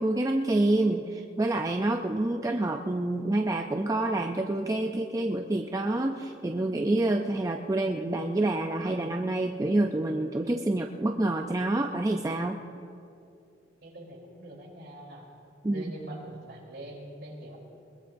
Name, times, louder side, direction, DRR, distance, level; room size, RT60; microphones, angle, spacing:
voice 1, 0.0-12.6 15.6-15.9, right 2 dB, 15° right, 3 dB, 0.5 m, -27 dB
voice 2, 13.8-15.3 15.7-17.6, right 1 dB, 60° right, -2 dB, 3.6 m, -43 dB
21.5 x 21.0 x 2.6 m, 2.5 s
head